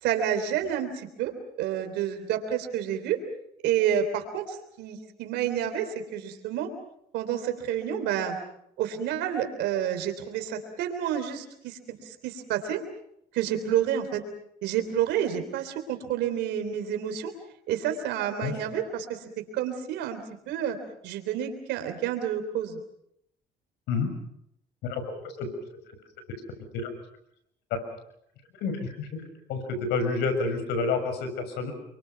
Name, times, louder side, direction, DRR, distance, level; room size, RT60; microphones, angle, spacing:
voice 1, 0.0-1.3 1.6-3.2 3.6-6.7 7.1-8.4 8.8-12.8 13.3-14.2 14.6-17.3 17.7-19.2 19.5-20.8 21.0-22.8, right 9 dB, 85° right, 7 dB, 3.5 m, -29 dB
voice 2, 24.8-25.5 26.8-26.9 27.7-27.8 28.6-29.2 29.5-31.7, left 4 dB, 85° left, 8 dB, 6.5 m, -29 dB
29.5 x 24.0 x 5.9 m, 0.74 s
cardioid pair, 110°, 17 cm